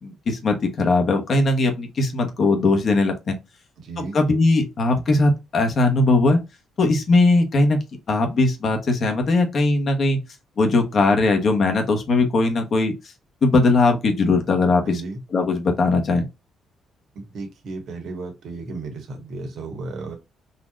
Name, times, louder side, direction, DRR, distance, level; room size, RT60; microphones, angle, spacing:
voice 1, 0.0-3.3 4.1-6.4 6.8-7.8 8.1-10.2 10.6-12.9 13.4-15.0 15.3-16.3, left 3 dB, 50° left, 1.2 m, -19 dB
voice 2, 3.8-4.2 14.8-15.2 17.1-20.1, right 3 dB, 70° right, 1.5 m, -34 dB
4.1 x 2.9 x 2.4 m
cardioid pair, 90°, 0 cm